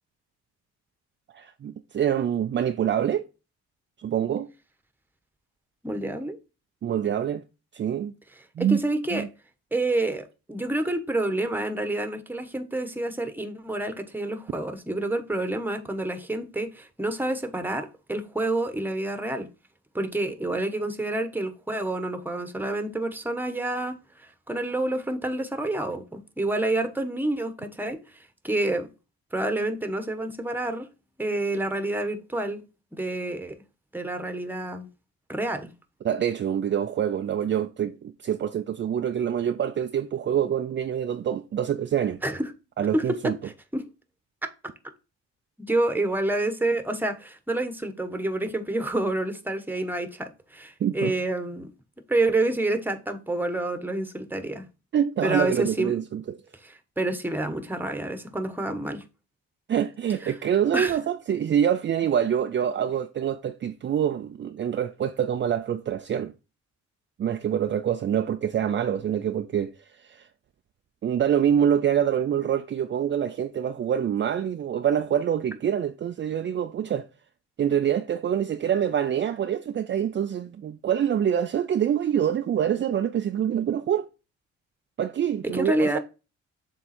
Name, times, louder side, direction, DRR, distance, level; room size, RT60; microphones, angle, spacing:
voice 1, 1.3-3.3 4.0-4.5 6.8-7.4 7.7-8.1 8.6-8.8 9.1-9.3 36.0-42.2 42.8-43.4 50.8-51.1 54.9-56.4 59.7-66.3 67.2-69.7 70.0-70.3 71.0-77.1 77.6-84.1 85.0-86.0, right 9 dB, 40° right, 0.5 m, -25 dB
voice 2, 5.8-6.4 8.6-9.2 9.7-19.5 19.9-28.0 28.4-28.9 29.3-30.9 31.2-32.6 32.9-33.5 33.9-34.9 35.3-35.7 42.2-42.4 42.9-43.0 43.4-43.8 45.7-51.7 52.1-54.6 55.2-55.9 56.6-59.0 60.2-60.3 60.7-61.0 85.5-86.0, right 2 dB, 5° right, 1.1 m, -28 dB
6.9 x 3.7 x 4.3 m
cardioid pair, 90°, 30 cm